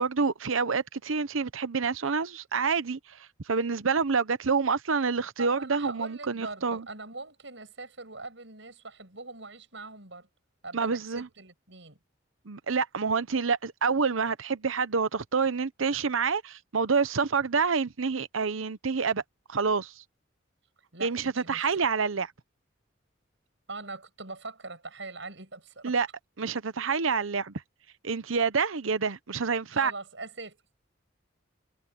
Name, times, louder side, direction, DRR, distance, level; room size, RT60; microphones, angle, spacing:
voice 1, 0.0-6.9 10.7-11.3 12.5-19.2 19.5-20.0 21.0-22.3 25.8-26.1 26.4-27.6 28.0-29.9, right 5 dB, 85° right, 0.9 m, -27 dB
voice 2, 5.4-10.3 10.6-12.0 20.9-21.7 23.7-26.0 29.7-30.6, right 3 dB, 70° right, 6.4 m, -42 dB
head